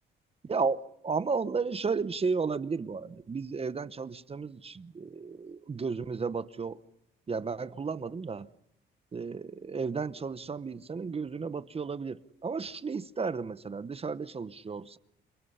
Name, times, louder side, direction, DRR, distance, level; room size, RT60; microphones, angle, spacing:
voice 1, 0.5-6.8 7.3-8.5 9.1-15.0, right 5 dB, 30° right, 0.9 m, -33 dB
28.5 x 27.5 x 5.6 m
cardioid pair, 90°, 20 cm